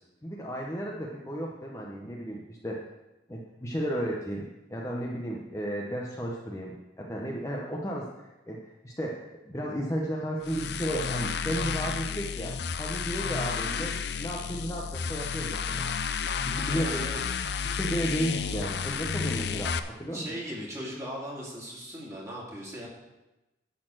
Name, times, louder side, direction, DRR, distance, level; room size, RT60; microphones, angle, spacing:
voice 1, 0.2-2.8 3.3-15.9 16.4-17.0 17.6-20.2, right 1 dB, 15° left, -2 dB, 0.9 m, -34 dB
sound 1, 10.4-19.8, left 6 dB, 65° left, 0.5 m, -31 dB
voice 2, 16.7-17.2 20.1-22.9, equal, 15° right, -5 dB, 2.6 m, -38 dB
10.5 x 4.2 x 7.7 m, 1.0 s
head